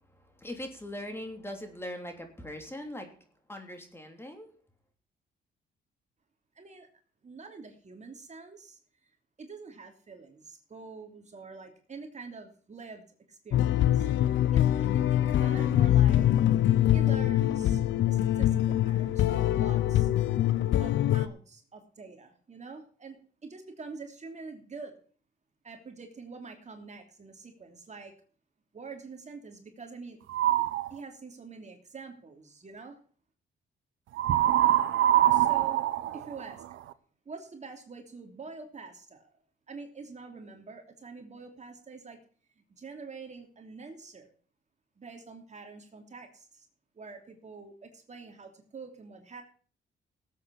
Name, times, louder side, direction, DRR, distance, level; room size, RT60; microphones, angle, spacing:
voice 1, 0.1-3.1 3.5-4.5, left 1 dB, 10° left, 5 dB, 3.1 m, -41 dB
voice 2, 6.6-6.9 7.2-8.8 9.4-16.3 16.9-17.8 18.1-20.1 20.8-24.9 25.6-28.1 28.7-30.2 30.9-33.0 35.3-36.6 37.2-39.3 39.7-42.2 42.7-44.3 45.0-46.7 47.0-49.4, right 4 dB, 35° right, 4 dB, 3.0 m, -46 dB
sound 1, 13.5-21.3, left 12 dB, 70° left, 0.8 m, -24 dB
sound 2, 30.3-30.9 34.2-36.9, right 12 dB, 85° right, 1.0 m, -24 dB
18.0 x 8.5 x 4.2 m, 0.44 s
cardioid pair, 90°, 20 cm